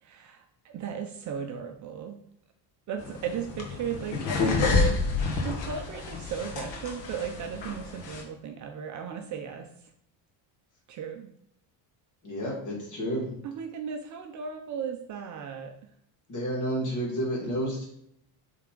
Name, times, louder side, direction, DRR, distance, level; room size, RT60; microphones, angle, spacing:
voice 1, 0.0-2.2 2.9-5.0 5.4-9.9 10.9-11.3 13.4-15.7, right 7 dB, 40° right, 4 dB, 0.5 m, -36 dB
sound 1, 3.0-8.2, left 4 dB, 70° left, 1.5 m, -29 dB
voice 2, 12.2-13.3 16.3-17.9, equal, 40° left, -3 dB, 2.2 m, -30 dB
7.6 x 3.5 x 3.8 m, 0.72 s
cardioid pair, 180°, 46 cm